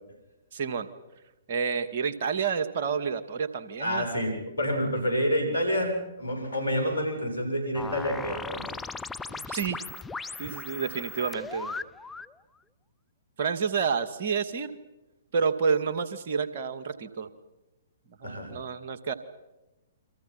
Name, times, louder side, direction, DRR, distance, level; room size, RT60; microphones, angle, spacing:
voice 1, 0.5-0.9 1.5-4.1 9.3-9.8 10.4-11.7 13.4-14.7 15.3-17.3 18.2-19.1, right 6 dB, 50° right, 10 dB, 2.0 m, -29 dB
voice 2, 3.8-8.6 18.2-18.5, equal, 80° left, 4 dB, 7.6 m, -28 dB
sound 1, 7.7-12.3, left 4 dB, 10° left, 0.8 m, -38 dB
29.0 x 25.0 x 5.9 m, 1.0 s
figure-of-eight pair, 120°, 0 cm